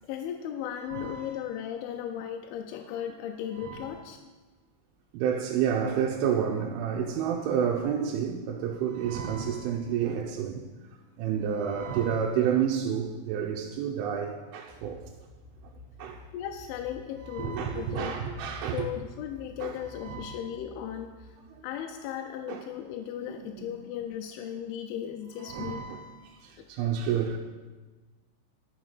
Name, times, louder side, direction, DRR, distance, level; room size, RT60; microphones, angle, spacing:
voice 1, 0.0-4.2 16.3-18.2 18.6-21.3 21.6-25.8 26.6-26.7, left 10 dB, 85° left, 4 dB, 3.0 m, -36 dB
voice 2, 0.9-1.3 3.6-3.9 5.1-10.6 11.2-15.0 16.0-16.2 17.3-18.9 19.6-20.4 21.5-21.6 22.5-22.6 23.4-23.7 25.4-27.4, right 8 dB, 85° right, -1 dB, 3.2 m, -30 dB
sound 1, 14.7-22.0, left 1 dB, 35° right, 0.7 m, -49 dB
11.0 x 6.6 x 5.9 m, 1.3 s
omnidirectional pair, 5.4 m